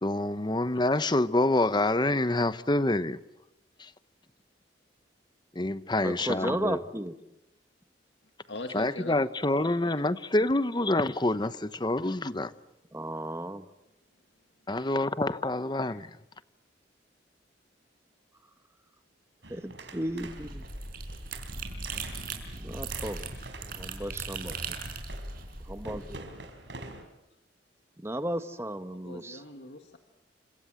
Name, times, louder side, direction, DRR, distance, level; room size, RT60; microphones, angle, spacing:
voice 1, 0.0-3.2 3.8-3.9 5.6-6.8 8.7-12.5 14.7-16.1, left 2 dB, 25° left, 0.9 m, -27 dB
voice 2, 6.0-7.1 12.9-13.6 19.5-20.7 22.6-23.3 23.8-24.8 25.7-26.2 28.0-29.4, right 1 dB, 15° right, 1.3 m, -34 dB
voice 3, 8.5-9.1 9.6-10.0 15.9-16.1 28.9-30.0, left 2 dB, 65° left, 2.0 m, -42 dB
sound 1, 19.4-27.0, right 2 dB, 70° right, 4.7 m, -47 dB
sound 2, 20.1-26.2, right 4 dB, 50° right, 5.2 m, -38 dB
29.5 x 26.0 x 7.7 m
head